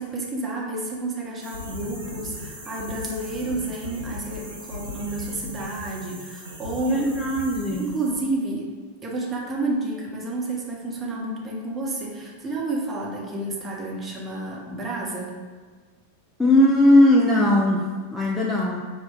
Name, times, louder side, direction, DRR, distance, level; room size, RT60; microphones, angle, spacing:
voice 1, 0.0-7.3 7.8-8.7 9.0-15.3, right 2 dB, 20° right, -3 dB, 0.7 m, -30 dB
sound 1, 1.4-8.3, left 1 dB, 85° right, 0.7 m, -38 dB
voice 2, 6.9-7.9 16.4-18.8, left 1 dB, 10° left, -3 dB, 0.3 m, -19 dB
5.3 x 2.1 x 2.2 m, 1.5 s
figure-of-eight pair, 90°, 0 cm